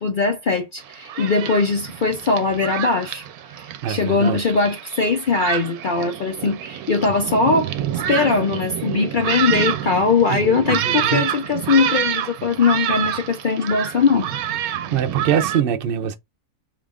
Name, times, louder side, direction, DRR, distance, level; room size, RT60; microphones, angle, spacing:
voice 1, 0.0-3.3 3.6-7.7 8.1-14.3, left 4 dB, 85° left, 0.4 m, -20 dB
Thunderstorm, 0.8-15.6, right 10 dB, 75° right, 1.0 m, -27 dB
voice 2, 3.8-4.4 10.3-11.2 14.9-16.2, right 9 dB, 55° right, 0.7 m, -23 dB
4.9 x 2.5 x 3.5 m
omnidirectional pair, 1.7 m